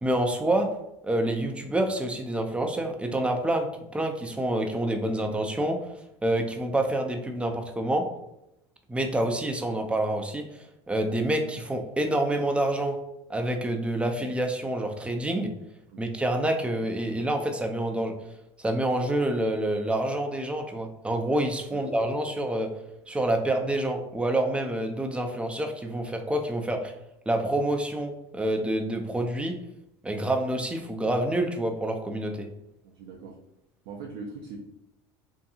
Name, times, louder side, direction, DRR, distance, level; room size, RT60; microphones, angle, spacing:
voice 1, 0.0-0.7 1.0-3.7 3.9-5.8 6.2-8.1 8.9-10.5 10.9-13.0 13.3-15.5 16.0-18.1 18.6-22.7 23.1-26.9 27.3-29.6 30.0-32.5, right 1 dB, 10° right, 4 dB, 0.4 m, -27 dB
sound 1, 21.7-22.8, left 6 dB, 50° left, 0.8 m, -44 dB
voice 2, 32.9-33.4 33.8-34.6, right 4 dB, 75° right, -2 dB, 0.5 m, -40 dB
2.7 x 2.6 x 2.4 m, 0.86 s
hypercardioid pair, 90°, 14 cm